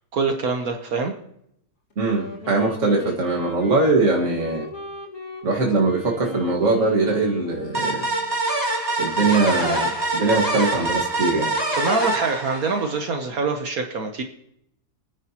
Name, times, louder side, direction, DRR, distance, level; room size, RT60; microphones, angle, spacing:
voice 1, 0.1-1.1 11.8-14.2, right 4 dB, 65° right, 4 dB, 1.5 m, -25 dB
Wind instrument woodwind instrument, 1.9-8.4, left 2 dB, 55° left, 2.4 m, -37 dB
voice 2, 2.0-4.7 5.4-8.1 9.0-11.5, right 3 dB, 50° right, -2 dB, 2.1 m, -21 dB
sound 1, 7.7-13.2, right 2 dB, 15° right, 4.4 m, -25 dB
29.0 x 9.9 x 2.9 m, 0.76 s
omnidirectional pair, 1.7 m